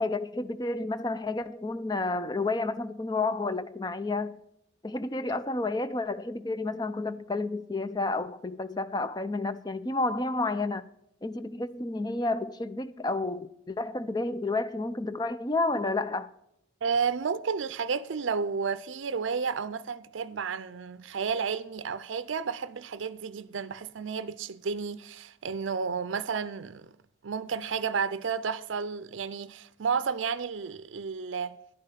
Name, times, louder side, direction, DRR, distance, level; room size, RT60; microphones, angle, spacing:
voice 1, 0.0-4.4 4.8-10.9 11.2-16.3, left 2 dB, 20° left, 0.5 m, -30 dB
voice 2, 16.8-26.9 27.2-31.6, right 5 dB, 75° right, 0.5 m, -32 dB
11.0 x 9.0 x 5.7 m
head